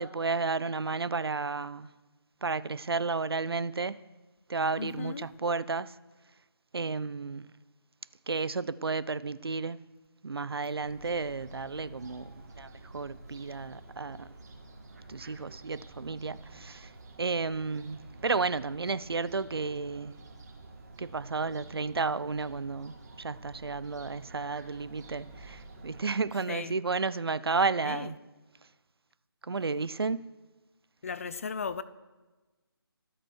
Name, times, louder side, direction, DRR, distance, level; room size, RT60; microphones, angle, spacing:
voice 1, 0.0-1.9 2.4-4.0 4.5-5.9 6.7-7.5 8.3-9.8 10.2-14.3 15.1-16.9 17.2-20.2 21.0-28.2 29.5-30.2, right 4 dB, 75° right, 0.7 m, -32 dB
voice 2, 4.8-5.3 26.5-26.8 27.8-28.1 31.0-31.8, left 5 dB, 35° left, 0.7 m, -36 dB
Fowl, 10.8-26.0, right 2 dB, 40° right, 3.1 m, -50 dB
13.0 x 13.0 x 6.4 m
figure-of-eight pair, 160°, 13 cm